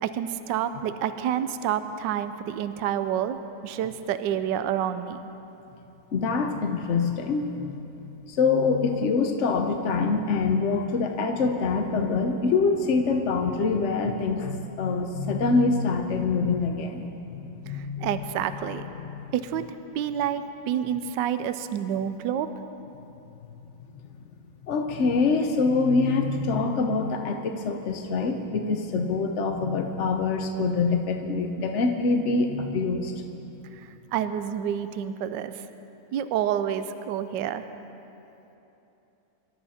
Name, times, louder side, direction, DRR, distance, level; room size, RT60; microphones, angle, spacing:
voice 1, 0.0-3.4 3.6-5.2 17.7-18.8 19.3-19.6 19.9-22.5 33.7-35.6 36.1-37.6, right 9 dB, 70° right, 11 dB, 1.1 m, -28 dB
voice 2, 6.1-7.8 8.3-17.0 17.3-18.1 19.0-19.2 24.6-33.2, left 4 dB, 65° left, 4 dB, 0.7 m, -25 dB
25.5 x 13.0 x 4.3 m, 3.0 s
omnidirectional pair, 2.4 m